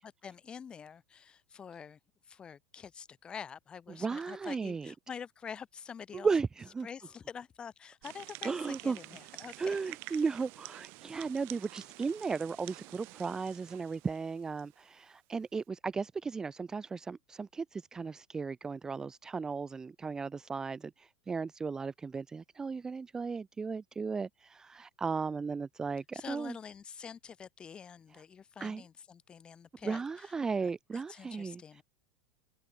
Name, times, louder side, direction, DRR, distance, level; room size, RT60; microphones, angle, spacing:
voice 1, 0.0-2.0 2.3-6.3 6.8-10.2 26.1-30.3 30.6-30.7 31.1-31.8, left 7 dB, 15° left, 2.4 m, -47 dB
voice 2, 3.9-4.9 6.1-6.9 8.4-9.0 9.6-26.6 28.6-28.8 29.8-31.8, right 5 dB, 10° right, 1.1 m, -35 dB
sound 1, 8.0-14.8, right 26 dB, 40° right, 2.6 m, -49 dB
open air
supercardioid pair, 165°, 6 cm